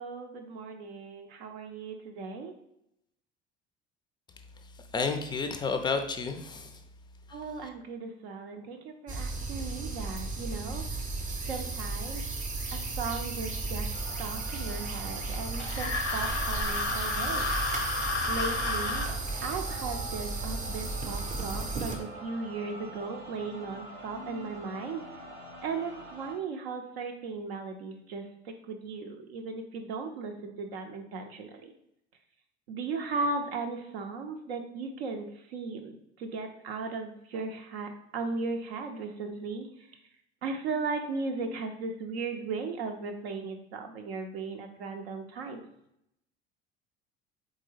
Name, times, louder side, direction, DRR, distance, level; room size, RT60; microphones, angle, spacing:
voice 1, 0.0-2.5 7.3-10.8 11.5-12.2 12.7-13.9 14.2-17.5 18.3-19.0 19.4-25.0 25.6-31.7 32.7-39.7 40.4-45.7, right 4 dB, 65° right, 5 dB, 0.6 m, -37 dB
voice 2, 4.6-6.8 7.3-7.7, left 4 dB, 15° left, 7 dB, 0.4 m, -32 dB
sound 1, 9.1-22.0, right 3 dB, 25° right, 0.7 m, -34 dB
sound 2, 13.9-26.4, right 1 dB, 90° right, 0.9 m, -45 dB
sound 3, 15.6-19.1, left 3 dB, 90° left, 0.6 m, -31 dB
3.9 x 3.6 x 3.2 m, 0.78 s
figure-of-eight pair, 60°, 34 cm